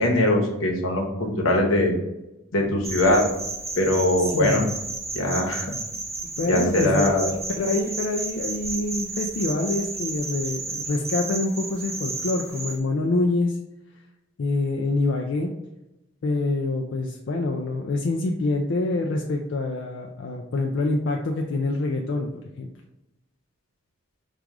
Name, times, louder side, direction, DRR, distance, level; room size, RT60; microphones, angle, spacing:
voice 1, 0.0-1.9 2.5-3.2 3.8-4.6 5.1-5.7 6.5-7.3, left 1 dB, 90° left, 0 dB, 1.0 m, -21 dB
sound 1, 2.8-12.8, right 3 dB, 15° right, 0.4 m, -33 dB
voice 2, 4.3-4.7 6.2-13.6 14.4-15.5 16.2-22.3 22.6-22.7, left 2 dB, 65° left, 1 dB, 0.4 m, -26 dB
4.7 x 2.4 x 3.6 m, 0.94 s
head